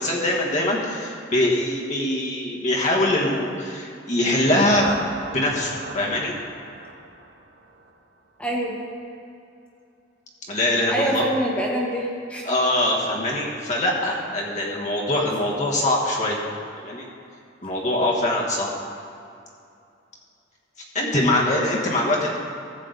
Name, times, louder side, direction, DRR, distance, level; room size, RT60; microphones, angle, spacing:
voice 1, 0.0-5.0 5.3-6.3 10.5-11.3 12.4-16.4 16.8-17.0 17.6-18.7 20.9-22.4, left 1 dB, 40° left, -3 dB, 1.4 m, -23 dB
sound 1, 4.1-8.0, right 2 dB, 60° right, 0.9 m, -36 dB
voice 2, 8.4-8.8 10.9-12.5 21.0-21.4, equal, 5° left, -3 dB, 1.3 m, -25 dB
14.5 x 7.6 x 3.9 m, 2.5 s
head